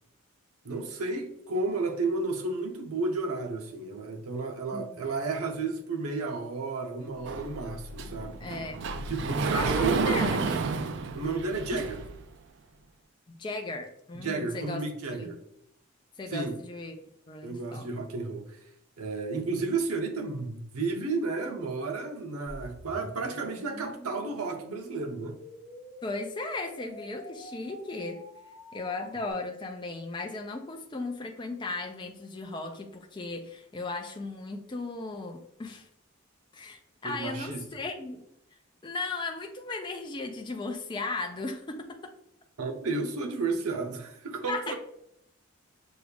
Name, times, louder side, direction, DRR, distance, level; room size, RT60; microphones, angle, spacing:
voice 1, 0.6-8.5 9.0-10.2 11.1-12.0 14.2-15.4 16.3-16.6 17.4-18.5 19.0-25.4 37.0-37.6 42.6-44.7, right 3 dB, 90° right, 0.7 m, -32 dB
Sliding door, 7.2-12.2, right 4 dB, 55° right, 0.3 m, -31 dB
voice 2, 8.4-8.9 9.5-10.8 11.7-11.8 13.4-14.8 15.2-15.3 16.2-17.0 17.3-18.0 26.0-28.2 28.7-35.9 36.5-38.2 38.8-42.1 44.5-44.7, left 3 dB, 20° left, 0.4 m, -36 dB
sound 1, 22.5-29.3, equal, 55° left, 1.0 m, -47 dB
6.2 x 2.3 x 3.4 m
head